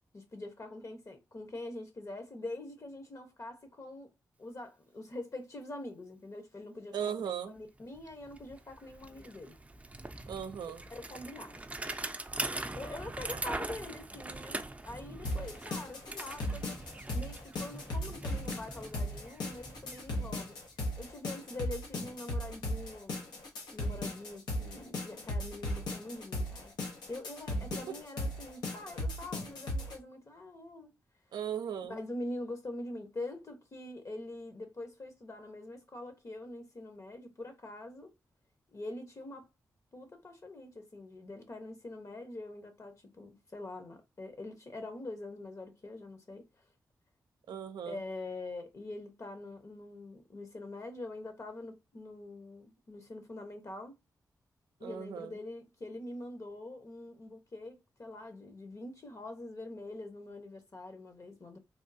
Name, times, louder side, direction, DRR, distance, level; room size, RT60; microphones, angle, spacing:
voice 1, 0.1-4.1 4.4-7.1 7.5-9.6 10.7-11.6 12.7-16.8 17.1-20.5 21.0-23.4 23.7-26.7 27.1-30.9 31.9-38.1 38.7-39.5 39.9-46.5 47.8-54.0 54.8-61.6, left 2 dB, 45° left, 1.0 m, -44 dB
voice 2, 6.9-7.6 10.3-10.8 13.3-13.4 27.9-28.0 31.3-32.0 47.5-48.0 54.8-55.4, right 8 dB, 90° right, 0.4 m, -37 dB
Bicycle, 7.6-7.7 7.9-20.8, right 2 dB, 20° right, 0.5 m, -42 dB
sound 1, 15.2-29.9, left 1 dB, 90° left, 0.9 m, -37 dB
3.6 x 2.3 x 2.6 m
cardioid pair, 50°, 7 cm